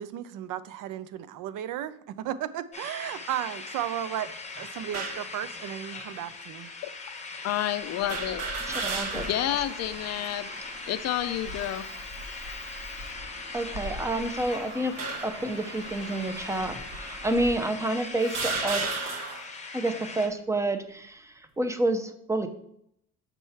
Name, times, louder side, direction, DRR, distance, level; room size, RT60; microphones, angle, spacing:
voice 1, 0.0-6.7, right 11 dB, 65° right, 14 dB, 0.5 m, -34 dB
sound 1, 2.7-20.3, left 4 dB, 20° left, 0.9 m, -40 dB
sound 2, 4.9-5.3 6.2-6.3 8.1-9.6 10.0-10.1 11.2-11.7 12.3-12.6 13.6-14.4 15.0-15.5 16.4-16.5 17.4-17.5 18.2-19.5, right 3 dB, 50° right, 1.1 m, -33 dB
voice 2, 7.4-8.4 9.1-10.5 10.9-11.9, left 12 dB, 50° left, 12 dB, 0.5 m, -29 dB
Traffic noise roadway noise, 8.0-17.5, right 2 dB, 90° right, 1.7 m, -44 dB
voice 3, 8.7-9.3 13.5-14.9 15.2-19.1 19.7-22.5, right 2 dB, 10° right, 9 dB, 0.6 m, -29 dB
6.7 x 3.1 x 5.6 m, 0.73 s
cardioid pair, 125°, 34 cm